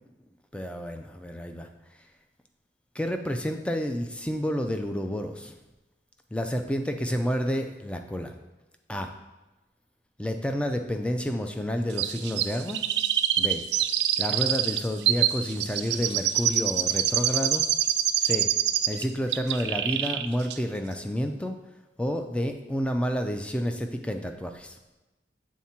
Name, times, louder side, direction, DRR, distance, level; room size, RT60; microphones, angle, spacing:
voice 1, 0.5-1.7 2.9-5.5 6.3-8.3 8.9-9.1 10.2-12.9 13.4-13.6 14.2-17.7 18.2-18.5 18.9-21.6 22.0-24.8, equal, 5° left, 5 dB, 0.4 m, -30 dB
Chirp tweet, 12.0-19.0 19.3-20.3 20.5-20.6, right 11 dB, 70° right, 0.3 m, -25 dB
7.3 x 3.6 x 4.3 m, 1.1 s
head